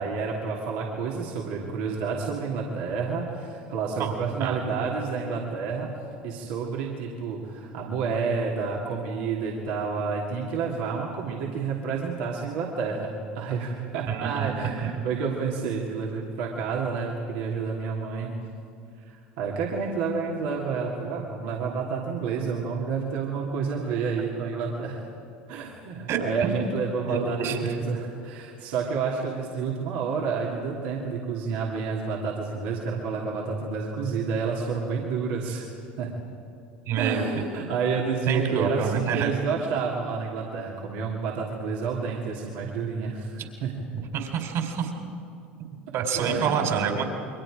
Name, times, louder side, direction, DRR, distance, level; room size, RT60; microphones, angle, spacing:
voice 1, 0.0-5.9 6.2-13.1 13.3-18.3 19.1-25.0 25.5-35.7 36.0-36.1 36.9-43.8 46.1-46.8, right 5 dB, 70° right, -3 dB, 3.0 m, -29 dB
voice 2, 4.0-4.5 14.1-14.5 26.1-26.5 27.0-27.7 36.9-37.4 38.3-39.3 43.4-43.5 44.1-44.9 45.9-47.0, right 6 dB, 55° right, 3 dB, 4.3 m, -27 dB
28.5 x 23.5 x 5.1 m, 2.5 s
hypercardioid pair, 80°, 6 cm